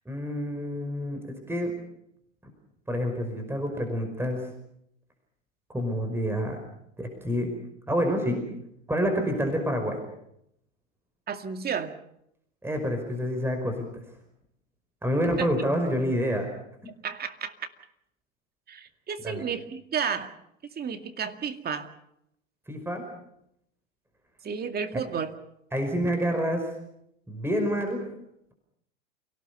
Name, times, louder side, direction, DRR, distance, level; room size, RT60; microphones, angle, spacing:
voice 1, 0.1-1.7 2.9-4.5 5.7-6.6 7.0-7.5 7.9-8.4 8.9-10.0 12.6-13.9 15.0-16.5 19.2-19.4 22.7-23.0 25.7-26.7 27.3-28.0, equal, 5° right, 4 dB, 5.3 m, -28 dB
voice 2, 11.3-11.9 15.4-15.5 16.9-17.5 18.7-20.3 20.8-21.9 24.4-25.4, right 6 dB, 25° right, 7 dB, 2.2 m, -32 dB
28.5 x 18.5 x 6.8 m, 0.76 s
hypercardioid pair, 105°, 38 cm